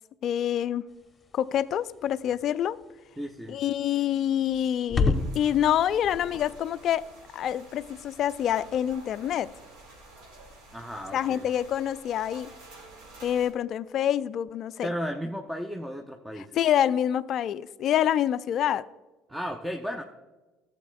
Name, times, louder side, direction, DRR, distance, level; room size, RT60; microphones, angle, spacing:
voice 1, 0.2-0.9 1.3-2.8 3.5-7.0 7.3-9.5 11.1-12.5 13.2-14.9 16.4-18.8, left 10 dB, 50° left, 17 dB, 0.3 m, -26 dB
sound 1, 0.9-9.8, left 4 dB, 20° left, 1.0 m, -35 dB
voice 2, 3.2-3.6 10.7-11.4 14.8-16.6 19.3-20.0, equal, 5° right, 4 dB, 0.7 m, -34 dB
sound 2, 5.1-13.5, right 2 dB, 60° right, 2.0 m, -49 dB
15.0 x 7.7 x 2.2 m, 1.2 s
figure-of-eight pair, 60°, 0 cm